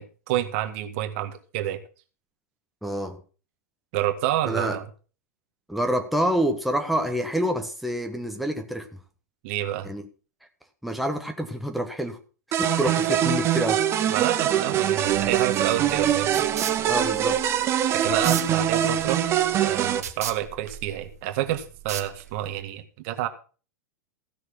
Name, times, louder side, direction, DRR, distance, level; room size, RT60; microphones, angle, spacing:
voice 1, 0.0-1.8 3.9-4.9 9.4-9.9 12.8-13.2 14.1-16.3 17.9-19.2 19.6-23.3, right 13 dB, 45° right, 1.8 m, -28 dB
voice 2, 2.8-3.2 4.5-4.8 5.7-8.9 9.8-10.0 10.8-12.2 12.5-13.8 16.8-17.4, equal, ahead, 1.4 m, -27 dB
sound 1, 12.5-20.0, right 10 dB, 30° right, 1.1 m, -23 dB
sound 2, 15.0-22.6, right 8 dB, 60° right, 1.6 m, -37 dB
15.5 x 6.7 x 6.1 m
figure-of-eight pair, 95°, 9 cm